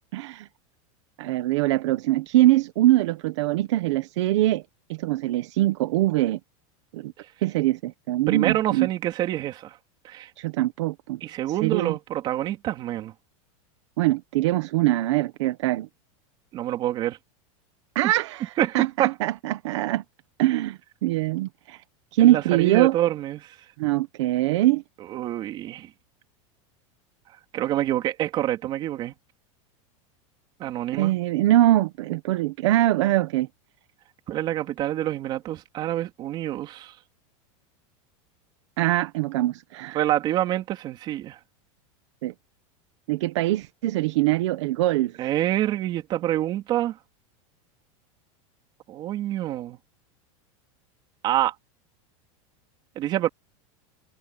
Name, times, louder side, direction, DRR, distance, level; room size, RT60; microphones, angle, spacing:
voice 1, 0.1-0.5 1.2-4.6 4.9-6.4 6.9-7.1 7.4-8.9 10.4-11.2 11.6-12.0 14.0-15.9 17.9-20.0 20.4-21.8 22.1-23.0 23.8-24.8 30.9-33.5 38.8-40.0 42.2-42.3 43.1-45.1, right 15 dB, 60° right, 1.4 m, -23 dB
voice 2, 8.3-9.8 10.0-10.3 11.2-13.1 16.5-17.2 18.6-19.1 22.2-23.6 25.1-25.9 27.5-29.1 30.6-31.1 34.3-36.9 39.9-41.4 45.2-47.0 48.9-49.8 51.2-51.5 53.0-53.3, right 13 dB, 25° right, 3.5 m, -26 dB
supercardioid pair, 180°, 17 cm